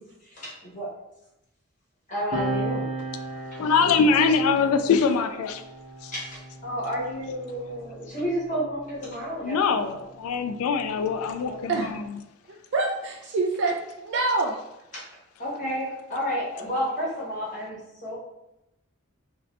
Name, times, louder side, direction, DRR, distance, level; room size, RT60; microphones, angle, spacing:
voice 1, 0.3-0.9 2.1-2.9 3.5-4.1 6.1-10.1 11.4-11.8 14.9-15.0 15.4-18.2, equal, 35° left, -6 dB, 1.2 m, -31 dB
sound 1, 2.3-9.2 10.2-12.0, right 2 dB, 35° right, 0.8 m, -37 dB
voice 2, 3.6-5.6 6.0-6.1 9.4-12.0, left 5 dB, 85° left, 9 dB, 0.3 m, -23 dB
voice 3, 12.7-14.5, right 3 dB, 55° right, -1 dB, 0.3 m, -26 dB
2.6 x 2.5 x 3.2 m, 0.91 s
head